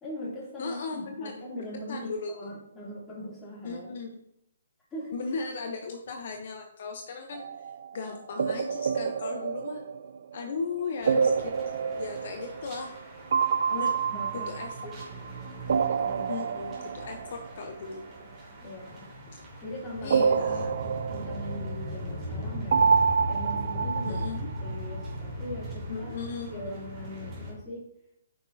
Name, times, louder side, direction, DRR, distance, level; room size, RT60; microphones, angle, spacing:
voice 1, 0.0-4.0 4.9-5.2 13.7-14.5 14.8-15.0 16.0-16.3 18.6-19.1 19.6-22.9 23.2-24.2 24.6-26.1 26.5-27.9, equal, 15° left, -6 dB, 2.8 m, -40 dB
voice 2, 0.6-1.5 1.9-2.5 3.6-4.1 5.1-9.8 10.3-11.5 11.9-12.9 13.7-14.0 14.3-14.8 16.3-18.0 20.0-20.8 24.0-24.5 25.9-26.8, left 4 dB, 50° left, 4 dB, 0.8 m, -37 dB
sound 1, 7.3-7.9 8.4-10.4 11.1-13.0 13.3-15.3 15.7-17.5 20.1-22.0 22.7-24.7, right 6 dB, 60° right, 0.4 m, -27 dB
sound 2, 11.0-27.5, equal, 20° right, 2.5 m, -39 dB
8.7 x 5.7 x 2.7 m, 0.77 s
hypercardioid pair, 150°, 0 cm